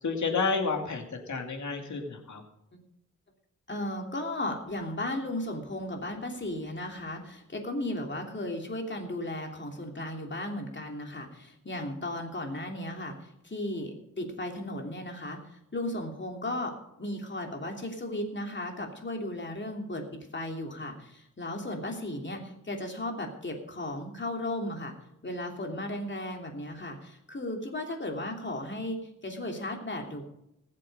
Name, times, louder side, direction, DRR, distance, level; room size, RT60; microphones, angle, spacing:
voice 1, 0.0-2.4, left 4 dB, 75° left, 4 dB, 2.5 m, -30 dB
voice 2, 3.7-13.2 13.4-16.7 17.0-20.0 20.3-24.9 25.2-30.2, left 1 dB, 40° left, 2 dB, 3.1 m, -35 dB
19.5 x 7.6 x 5.4 m, 0.81 s
wide cardioid pair, 80°, 30 cm